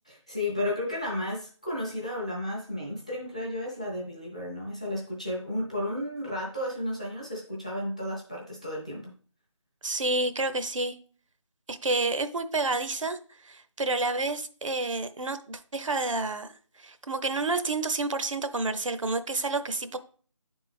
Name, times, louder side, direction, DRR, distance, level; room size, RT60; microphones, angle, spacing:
voice 1, 0.1-9.1, left 1 dB, 10° left, 0.5 m, -33 dB
voice 2, 9.8-11.0 11.7-13.2 13.4-16.5 16.8-20.0, right 3 dB, 70° right, 0.6 m, -29 dB
9.5 x 3.5 x 3.4 m
figure-of-eight pair, 175°, 17 cm